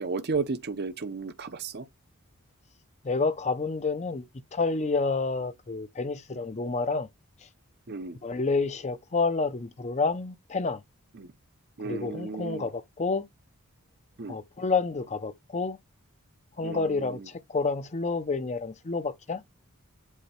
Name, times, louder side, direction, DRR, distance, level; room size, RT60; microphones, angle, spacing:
voice 1, 0.0-1.9 7.9-8.2 11.2-11.3 11.8-12.7 14.2-14.4 16.6-17.3, right 4 dB, 50° right, 0.7 m, -33 dB
voice 2, 3.0-4.2 4.5-7.1 8.2-10.8 11.8-13.3 14.3-15.8 16.6-19.4, left 4 dB, 30° left, 0.6 m, -29 dB
8.2 x 2.8 x 4.3 m
head